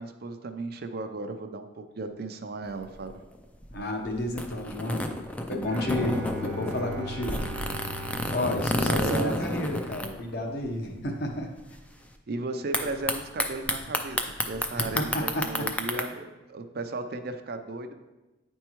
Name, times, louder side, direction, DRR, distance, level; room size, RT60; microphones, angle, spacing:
voice 1, 0.0-3.2 8.9-9.4 12.3-17.9, right 3 dB, 50° right, 7 dB, 0.5 m, -35 dB
sound 1, 2.7-10.7 11.0-11.1 11.3-11.7 12.7-16.0, left 1 dB, 5° left, 0.4 m, -31 dB
voice 2, 3.7-5.1 5.5-7.4 8.3-11.5 14.7-15.5, left 1 dB, 55° left, 2 dB, 1.0 m, -31 dB
Bowed string instrument, 5.7-9.8, equal, 75° right, 0.9 m, -39 dB
9.4 x 4.5 x 3.0 m, 1.1 s
head